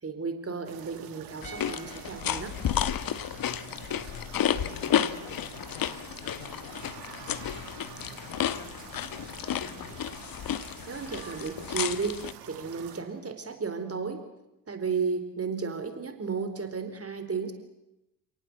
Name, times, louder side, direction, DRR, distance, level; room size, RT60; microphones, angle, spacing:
voice 1, 0.0-2.6 10.9-14.2 14.7-17.5, right 5 dB, 30° right, 8 dB, 4.4 m, -33 dB
sound 1, 0.6-13.0, right 10 dB, 75° right, 2.4 m, -47 dB
sound 2, 1.4-12.3, left 10 dB, 45° left, 1.4 m, -32 dB
sound 3, 1.4-4.7 4.9-5.1, right 7 dB, 45° right, 2.5 m, -52 dB
voice 2, 3.3-10.0, left 5 dB, 70° left, 5 dB, 5.1 m, -49 dB
29.0 x 18.5 x 8.0 m, 0.91 s
figure-of-eight pair, 45°, 48 cm